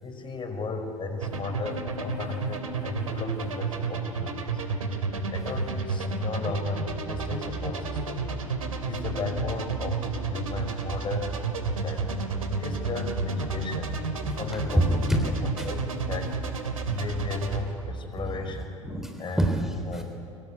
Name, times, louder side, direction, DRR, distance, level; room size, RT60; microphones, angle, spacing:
voice 1, 0.0-4.6 5.3-8.2 8.8-11.4 11.8-12.1 12.5-13.9 14.4-15.8 16.1-16.3 16.9-18.7 19.2-19.5 19.9-20.0, left 4 dB, 30° left, 6 dB, 5.1 m, -35 dB
sound 1, 1.2-17.6, right 4 dB, 85° right, 2.7 m, -32 dB
sound 2, 6.9-18.7, right 4 dB, 30° right, 1.1 m, -39 dB
voice 2, 14.7-15.2 15.6-15.8 18.3-20.0, right 1 dB, ahead, 4 dB, 3.6 m, -27 dB
25.0 x 24.5 x 9.6 m, 2.5 s
hypercardioid pair, 80°, 17 cm